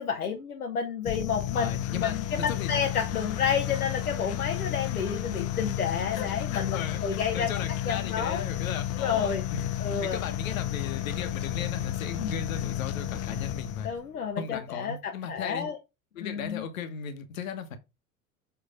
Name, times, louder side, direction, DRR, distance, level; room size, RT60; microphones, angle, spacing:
voice 1, 0.0-7.5 7.9-8.4 9.0-9.4 9.8-10.2 12.2-12.4 13.8-15.8 16.2-16.6, left 7 dB, 80° left, 1.1 m, -30 dB
sound 1, 1.0-14.0, left 12 dB, 35° left, 0.8 m, -32 dB
voice 2, 1.5-2.7 6.1-13.9 14.4-15.7 16.1-17.8, left 7 dB, 65° left, 1.4 m, -37 dB
7.1 x 4.6 x 3.5 m
figure-of-eight pair, 80°, 44 cm